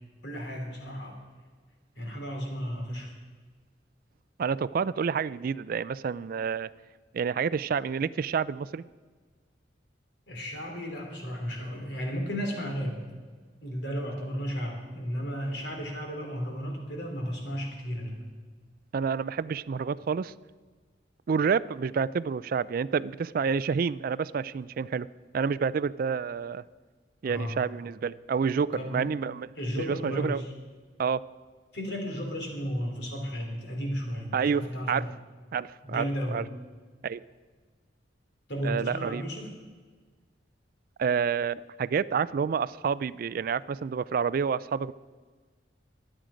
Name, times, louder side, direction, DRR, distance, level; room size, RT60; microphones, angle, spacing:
voice 1, 0.2-1.2 2.0-3.1 10.3-13.0 13.6-18.2 27.2-27.6 28.7-29.1 29.6-30.5 31.7-35.1 35.8-36.4 38.5-39.5, equal, 65° left, 1 dB, 3.6 m, -34 dB
voice 2, 4.4-6.7 7.1-8.8 18.9-20.3 21.3-25.1 25.3-26.6 27.2-30.4 31.0-31.2 34.3-35.1 35.5-36.4 37.0-37.2 38.6-39.2 41.0-44.9, right 6 dB, 50° right, 18 dB, 0.3 m, -29 dB
23.0 x 9.0 x 5.1 m, 1.4 s
head